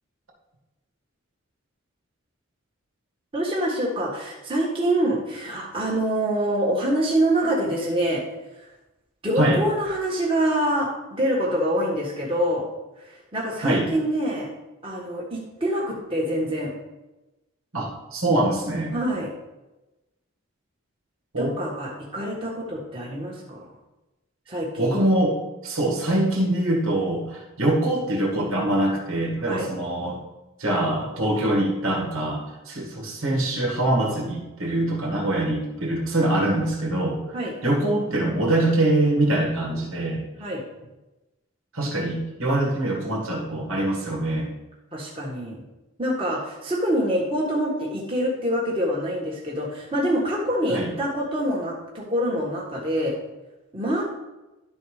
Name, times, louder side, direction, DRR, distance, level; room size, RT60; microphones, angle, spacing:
voice 1, 3.3-8.2 9.2-12.7 13.3-14.5 14.8-16.7 18.9-19.3 21.4-23.7 24.5-25.0 29.4-29.7 37.3-37.5 40.4-40.6 44.9-45.6 46.0-53.1 53.7-54.0, right 1 dB, 25° right, -5 dB, 1.5 m, -25 dB
voice 2, 17.7-18.9 21.3-21.5 24.8-30.2 30.6-37.2 37.6-40.2 41.7-44.5 50.7-50.9, right 1 dB, 75° right, 0 dB, 1.8 m, -24 dB
11.5 x 4.0 x 4.9 m, 1.0 s
head